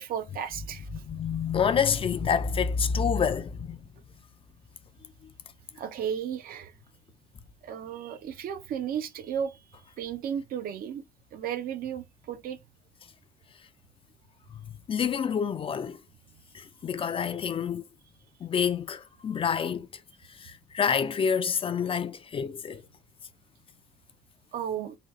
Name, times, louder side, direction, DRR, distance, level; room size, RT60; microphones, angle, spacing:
voice 1, 0.0-0.9 5.8-6.7 7.6-9.6 10.0-11.0 11.3-12.6 24.5-25.0, right 8 dB, 60° right, 0.6 m, -34 dB
voice 2, 0.9-3.8 14.9-16.0 16.5-17.8 18.4-19.9 20.4-22.8, left 7 dB, 30° left, 0.4 m, -28 dB
3.8 x 2.3 x 3.1 m
cardioid pair, 110°, 17 cm